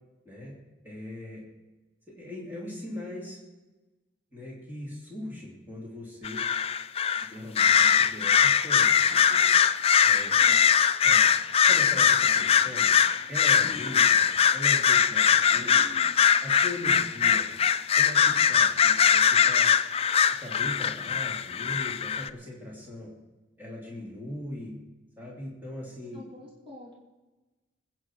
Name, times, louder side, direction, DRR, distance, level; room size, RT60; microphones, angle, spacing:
voice 1, 0.2-0.6 0.8-1.4 2.1-3.4 4.3-6.4 7.2-9.4 10.0-10.7 11.0-11.2 11.6-13.0 13.3-15.9 16.4-17.5 18.0-19.7 20.4-23.1 23.6-24.7 25.2-26.2, left 1 dB, 10° right, -4 dB, 3.1 m, -40 dB
sound 1, 6.2-7.3 7.6-22.3, left 8 dB, 30° left, 0.4 m, -22 dB
voice 2, 13.5-13.9 15.6-16.3 26.1-26.9, left 3 dB, 25° right, -4 dB, 2.9 m, -46 dB
21.0 x 9.1 x 4.7 m, 1.1 s
head